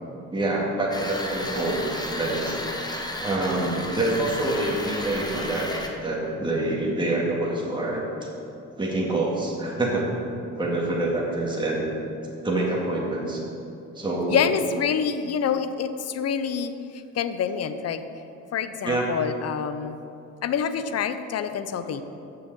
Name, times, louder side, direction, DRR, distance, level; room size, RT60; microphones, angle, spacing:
voice 1, 0.3-1.8 2.1-2.6 3.2-5.7 6.0-8.0 8.8-10.1 10.6-11.9 12.4-13.4 14.0-14.4 18.8-19.1 21.8-21.9, right 2 dB, 15° right, -4 dB, 2.1 m, -26 dB
sound 1, 0.9-5.9, left 1 dB, 15° left, 1.2 m, -33 dB
voice 2, 14.3-18.0 18.5-20.0 20.4-22.0, left 7 dB, 55° left, 11 dB, 0.7 m, -27 dB
7.0 x 6.9 x 7.9 m, 2.8 s
cardioid pair, 90°, 30 cm